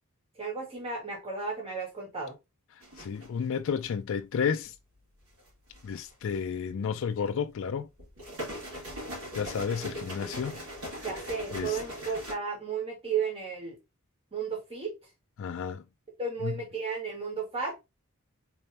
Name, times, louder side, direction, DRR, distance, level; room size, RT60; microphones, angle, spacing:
voice 1, 0.4-2.3 11.0-13.8 14.3-14.9 16.2-17.9, right 5 dB, 25° right, 1.8 m, -34 dB
sound 1, 2.8-3.5 5.4-6.1 8.0-12.3, equal, 80° right, 2.8 m, -40 dB
voice 2, 3.0-4.7 5.8-7.9 9.3-10.6 11.5-11.8 15.4-15.8 16.4-16.5, left 6 dB, 60° left, 0.3 m, -31 dB
4.1 x 3.3 x 2.7 m
head